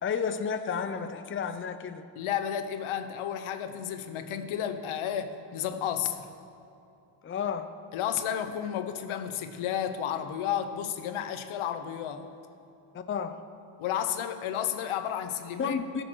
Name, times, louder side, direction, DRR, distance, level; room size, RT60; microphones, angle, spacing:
voice 1, 0.0-2.0 7.2-7.7 12.9-13.4 15.6-16.0, left 6 dB, 25° left, 9 dB, 0.6 m, -31 dB
voice 2, 2.2-6.3 7.9-12.3 13.8-15.8, left 9 dB, 75° left, 9 dB, 1.0 m, -32 dB
14.5 x 6.6 x 6.3 m, 2.7 s
cardioid pair, 100°, 50 cm